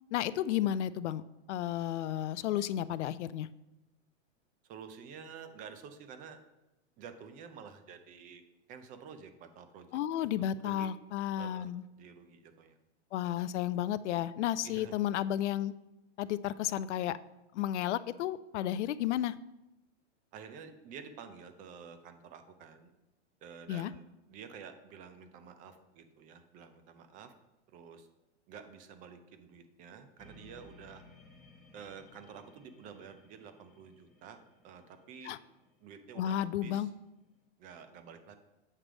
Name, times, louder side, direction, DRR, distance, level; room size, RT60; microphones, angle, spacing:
voice 1, 0.1-1.2 1.5-3.5 9.9-11.8 13.1-15.7 16.2-17.2 17.5-19.3 23.7-23.9 35.2-35.4 36.2-36.9, left 11 dB, 75° left, 16 dB, 0.5 m, -32 dB
voice 2, 4.6-6.4 7.0-8.4 8.7-10.9 11.4-11.7 12.0-12.8 14.6-15.0 20.3-22.9 23.4-27.3 27.7-28.1 28.5-31.0 31.7-34.4 34.6-35.4 35.8-36.9 37.6-38.3, right 6 dB, 25° right, 8 dB, 0.4 m, -50 dB
sound 1, 30.2-37.4, left 2 dB, ahead, 1.0 m, -60 dB
7.5 x 3.3 x 6.1 m, 0.96 s
hypercardioid pair, 135°, 35 cm